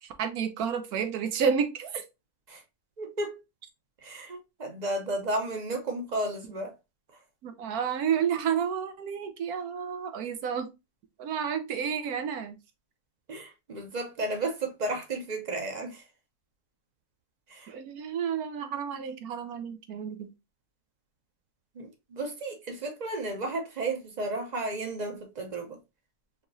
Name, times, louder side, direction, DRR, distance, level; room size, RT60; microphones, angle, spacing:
voice 1, 0.0-2.0 7.4-10.7 11.2-12.5 17.7-20.3, right 7 dB, 75° right, 1.2 m, -30 dB
voice 2, 3.0-3.4 4.0-6.7 13.3-16.1 17.5-17.7 21.7-25.8, right 2 dB, 35° right, 0.8 m, -33 dB
4.6 x 2.9 x 2.6 m
omnidirectional pair, 1.6 m